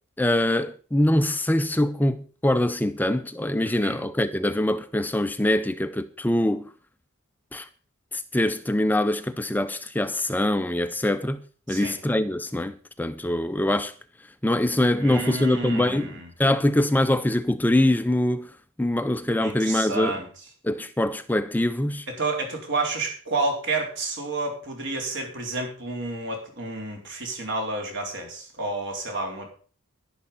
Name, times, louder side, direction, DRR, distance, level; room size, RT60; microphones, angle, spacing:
voice 1, 0.2-6.7 7.5-7.7 8.1-11.4 11.7-13.9 14.4-16.1 16.4-18.5 18.8-20.1 20.6-22.1, left 1 dB, 10° left, 0.5 m, -23 dB
voice 2, 3.6-4.0 11.7-12.0 15.0-16.3 19.4-20.3 22.1-29.5, right 3 dB, 60° right, 4.5 m, -30 dB
11.0 x 11.0 x 5.4 m
head